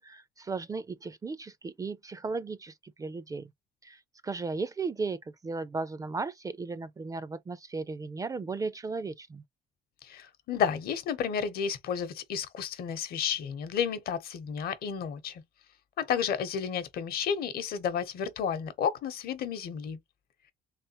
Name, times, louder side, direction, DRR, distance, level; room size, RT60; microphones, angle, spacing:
voice 1, 0.0-3.5 3.8-9.4, right 4 dB, 20° right, 0.4 m, -36 dB
voice 2, 10.0-15.4 16.0-20.0, left 7 dB, 65° left, 0.9 m, -31 dB
3.4 x 3.3 x 2.8 m
cardioid pair, 110°, 17 cm